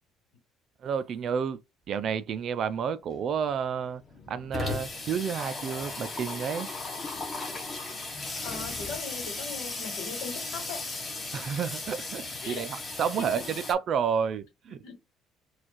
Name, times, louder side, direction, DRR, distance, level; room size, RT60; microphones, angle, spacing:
voice 1, 0.8-1.6 1.9-4.0 4.3-6.7 11.3-14.8, right 7 dB, 40° right, 0.3 m, -30 dB
Water tap faucet / Sink (filling or washing), 3.1-3.2 3.5-3.6 3.8-13.7, left 3 dB, 20° left, 0.9 m, -36 dB
voice 2, 8.4-10.9 11.2-11.5 12.4-12.7 13.2-13.5 14.7-14.9, left 5 dB, 80° left, 1.4 m, -40 dB
4.3 x 2.4 x 3.0 m
cardioid pair, 175°, 0 cm